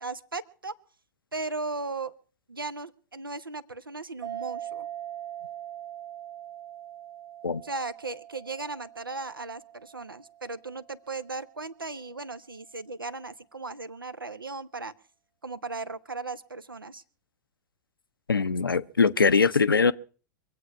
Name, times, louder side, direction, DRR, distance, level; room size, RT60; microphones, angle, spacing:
voice 1, 0.0-0.7 1.3-2.1 2.5-4.9 7.6-14.9 15.4-17.0, right 3 dB, 90° right, 0.9 m, -37 dB
sound 1, 4.2-11.3, right 11 dB, 55° right, 1.0 m, -42 dB
voice 2, 18.3-19.9, left 5 dB, 85° left, 0.6 m, -22 dB
24.5 x 8.3 x 5.8 m
figure-of-eight pair, 95°, 11 cm